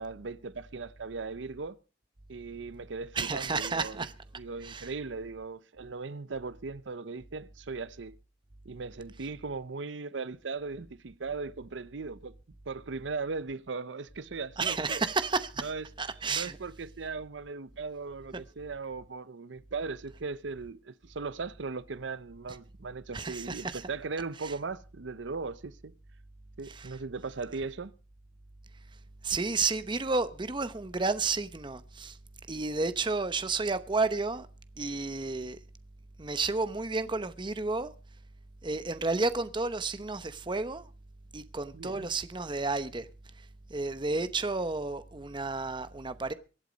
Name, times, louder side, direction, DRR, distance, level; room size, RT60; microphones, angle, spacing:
voice 1, 0.0-1.8 2.3-4.1 4.4-8.1 8.6-12.3 12.7-15.0 15.6-15.9 16.3-25.9 26.6-27.9 41.7-42.1, right 4 dB, 80° right, 0.7 m, -38 dB
voice 2, 3.1-4.1 4.6-4.9 14.6-15.7 16.0-16.6 23.1-23.8 26.7-26.9 29.2-32.2 32.5-34.5 34.8-35.6 36.2-37.9 38.6-40.9 41.3-43.1 43.7-46.3, right 3 dB, 25° right, 0.8 m, -31 dB
23.5 x 8.4 x 5.2 m
head